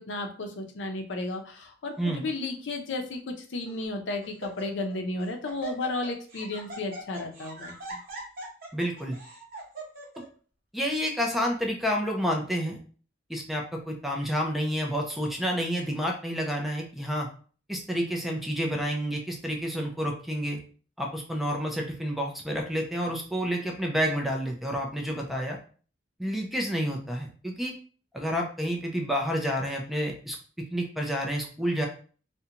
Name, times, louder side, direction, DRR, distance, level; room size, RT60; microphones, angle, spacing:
voice 1, 0.0-7.7, left 2 dB, 70° left, 4 dB, 0.5 m, -33 dB
Laughter, 1.9-2.3 3.1-3.2 3.7-3.9 4.2-5.0 5.2-10.2, right 2 dB, 50° right, 0.8 m, -42 dB
voice 2, 8.7-9.2 10.7-12.8 13.3-17.3 17.7-20.6 21.0-25.6 26.2-27.7 28.1-30.4 30.7-31.9, equal, ahead, 1 dB, 0.4 m, -29 dB
2.5 x 2.1 x 2.8 m, 0.41 s
head